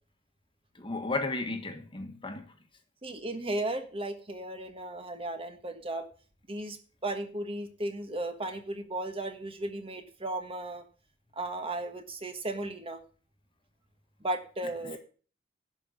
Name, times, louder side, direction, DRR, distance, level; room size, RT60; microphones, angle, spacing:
voice 1, 0.8-2.5 14.9-15.0, left 3 dB, 30° left, 1.5 m, -34 dB
voice 2, 3.0-6.1 6.5-6.8 7.0-10.8 11.3-13.0 14.2-15.0, right 2 dB, 30° right, 1.4 m, -35 dB
11.5 x 5.6 x 8.2 m
head